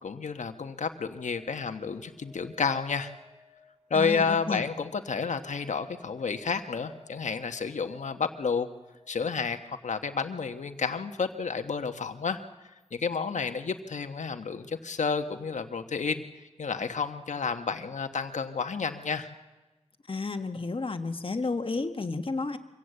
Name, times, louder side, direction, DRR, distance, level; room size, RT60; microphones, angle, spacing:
voice 1, 0.0-3.1 3.9-8.7 9.1-12.4 12.9-16.2 16.6-19.3, left 5 dB, 85° left, 7 dB, 1.1 m, -30 dB
sound 1, 0.6-10.5 12.8-12.9, left 3 dB, 20° right, 4.2 m, -58 dB
voice 2, 3.9-4.6 20.1-22.6, left 3 dB, 50° left, 7 dB, 1.5 m, -31 dB
24.5 x 16.5 x 7.8 m, 1.1 s
wide cardioid pair, 75°, 12 cm